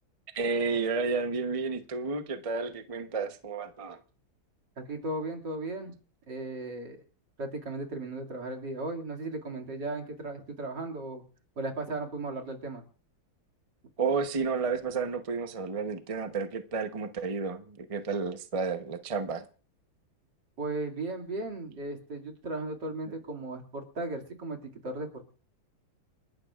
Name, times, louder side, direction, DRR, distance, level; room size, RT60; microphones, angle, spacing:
voice 1, 0.3-4.0 14.0-19.4, right 4 dB, 30° right, 0.6 m, -31 dB
voice 2, 4.8-5.9 6.3-7.0 7.4-11.2 11.6-12.8 20.6-25.3, right 2 dB, 60° right, 3.1 m, -36 dB
29.5 x 11.5 x 2.4 m
omnidirectional pair, 2.2 m